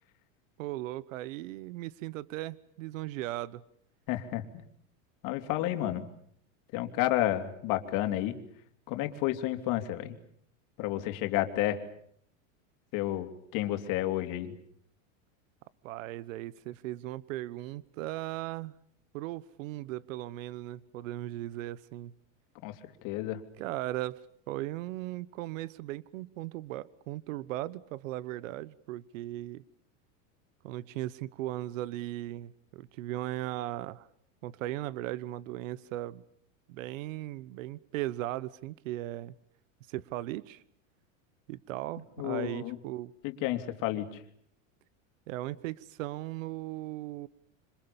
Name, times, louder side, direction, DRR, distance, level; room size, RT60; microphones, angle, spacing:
voice 1, 0.6-3.6 15.8-18.7 19.1-22.1 23.6-24.2 24.5-29.6 30.6-34.1 34.4-36.2 36.7-39.3 39.9-40.6 41.5-43.1 45.3-47.3, right 15 dB, 75° right, 20 dB, 1.1 m, -37 dB
voice 2, 4.1-4.6 5.2-6.1 6.7-8.4 8.9-10.2 10.8-11.8 12.9-14.5 22.6-23.4 42.2-42.8 43.2-44.2, left 14 dB, 55° left, 7 dB, 3.3 m, -31 dB
27.0 x 26.0 x 7.1 m, 0.66 s
supercardioid pair, 130°, 39 cm